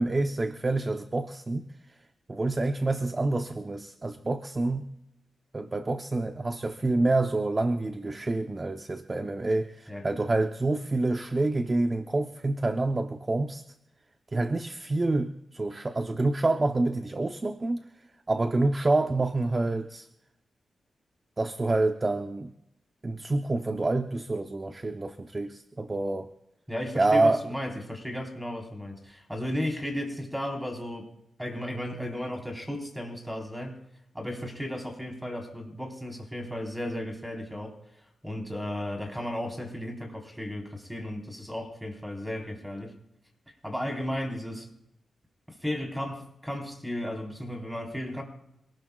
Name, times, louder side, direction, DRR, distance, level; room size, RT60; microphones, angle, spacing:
voice 1, 0.0-1.7 2.3-4.9 5.5-13.6 14.3-17.9 18.3-20.1 21.4-22.5 23.0-26.3 26.9-27.4, right 2 dB, 30° right, 7 dB, 0.8 m, -27 dB
voice 2, 26.7-31.1 31.4-33.8 34.1-37.7 38.2-42.9 43.6-44.7 45.5-48.2, left 1 dB, ahead, 2 dB, 4.0 m, -34 dB
27.0 x 18.5 x 2.4 m, 0.79 s
cardioid pair, 90°, 0 cm